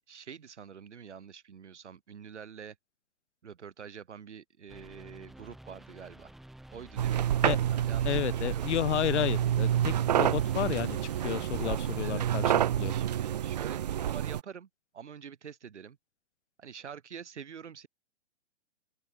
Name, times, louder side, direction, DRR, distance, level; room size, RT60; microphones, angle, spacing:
voice 1, 0.1-2.8 3.4-6.3 6.7-7.3 7.8-8.7 12.0-14.7 14.9-16.0 16.6-17.9, right 7 dB, 80° right, 4.2 m, -46 dB
sound 1, 4.7-12.1, right 1 dB, ahead, 1.0 m, -50 dB
sound 2, 7.0-14.4, right 10 dB, 35° right, 0.8 m, -28 dB
voice 2, 8.0-12.9, left 11 dB, 80° left, 0.6 m, -32 dB
open air
hypercardioid pair, 170°, 34 cm